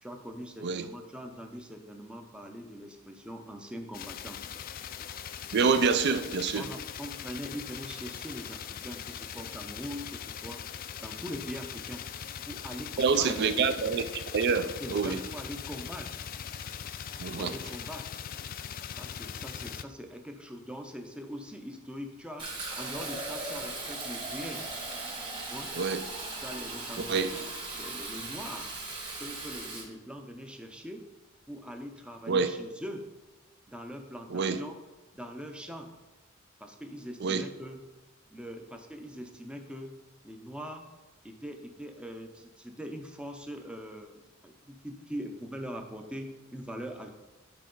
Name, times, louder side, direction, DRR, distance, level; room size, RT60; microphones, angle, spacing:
voice 1, 0.0-4.4 6.5-10.6 11.0-12.0 12.4-13.3 14.7-16.2 17.3-18.1 18.9-22.5 22.8-24.6 25.5-25.7 26.4-28.7 29.2-31.1 31.5-33.1 33.7-34.7 35.1-35.9 36.6-37.8 38.3-40.0 40.2-40.8 41.2-47.1, equal, 5° right, 4 dB, 0.5 m, -42 dB
sound 1, 3.9-19.8, left 8 dB, 45° left, 0.3 m, -41 dB
voice 2, 5.5-6.7 13.0-14.1 14.3-15.2 17.2-17.6 25.7-26.0 27.0-27.3 32.3-32.5 34.3-34.6 37.2-37.5, right 5 dB, 55° right, 10 dB, 0.4 m, -27 dB
Fill (with liquid), 22.4-29.8, right 2 dB, 25° right, 1.8 m, -38 dB
9.6 x 4.5 x 3.9 m, 1.1 s
head